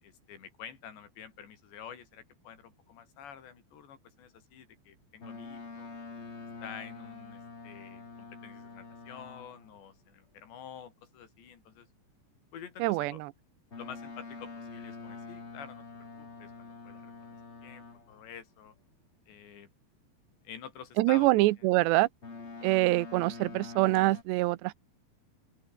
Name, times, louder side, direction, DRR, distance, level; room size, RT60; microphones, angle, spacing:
voice 1, 0.0-6.0 6.6-11.9 12.5-13.2 13.8-17.4 17.6-18.7 19.3-19.7 20.5-21.3 21.6-21.7, left 8 dB, 90° left, 5.6 m, -49 dB
Boat Water vehicle, 5.2-9.7 13.7-18.2 22.2-24.2, left 4 dB, 35° left, 1.1 m, -45 dB
voice 2, 12.8-13.3 21.0-22.1 22.6-24.7, right 19 dB, 85° right, 3.0 m, -25 dB
open air
omnidirectional pair, 4.9 m